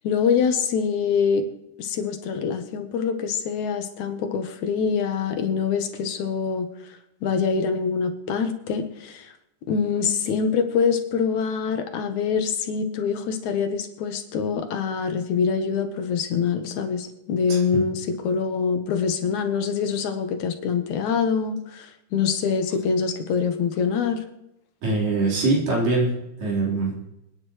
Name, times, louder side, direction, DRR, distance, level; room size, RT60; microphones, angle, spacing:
voice 1, 0.0-1.5 1.8-6.7 7.2-9.3 9.7-24.2, left 6 dB, 70° left, 6 dB, 2.4 m, -25 dB
voice 2, 17.5-17.8 24.8-26.1 26.4-26.9, right 3 dB, 85° right, -4 dB, 5.8 m, -23 dB
26.0 x 10.0 x 3.2 m, 0.86 s
omnidirectional pair, 3.7 m